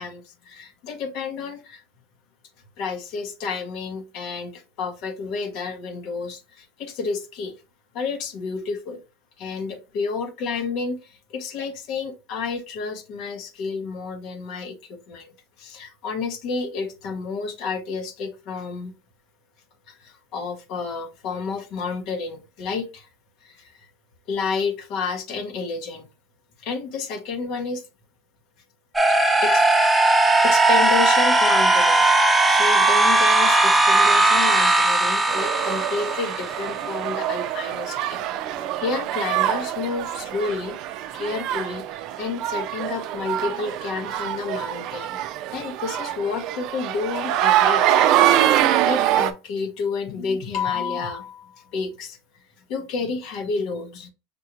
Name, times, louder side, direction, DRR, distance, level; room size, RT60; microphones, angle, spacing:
voice 1, 0.0-1.8 2.8-7.5 7.9-9.0 9.4-15.3 15.6-18.9 19.9-23.1 23.4-23.9 24.3-26.1 26.6-27.8 29.1-32.1 32.5-38.2 38.5-41.9 42.2-45.2 45.5-48.4 48.8-52.2 52.7-54.1, left 4 dB, 55° left, 0.9 m, -30 dB
Do Do Riser, 28.9-36.9, right 2 dB, 5° right, 0.8 m, -18 dB
sound 1, 35.3-49.3, right 12 dB, 55° right, 0.4 m, -24 dB
5.2 x 2.4 x 2.9 m
supercardioid pair, 120°, 0 cm